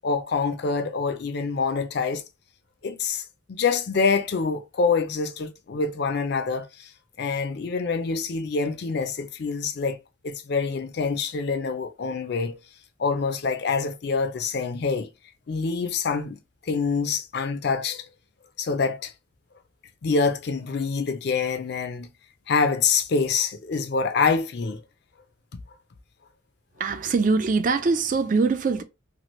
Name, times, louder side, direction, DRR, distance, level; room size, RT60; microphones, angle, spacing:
voice 1, 0.0-2.2 2.8-3.2 3.6-6.9 7.2-10.0 10.2-12.6 13.0-15.1 15.5-16.4 16.7-18.0 18.6-19.1 20.0-22.1 22.5-24.8, left 4 dB, 50° left, 0.4 m, -26 dB
voice 2, 26.8-28.8, right 4 dB, 40° right, 0.3 m, -22 dB
3.0 x 2.4 x 3.0 m
head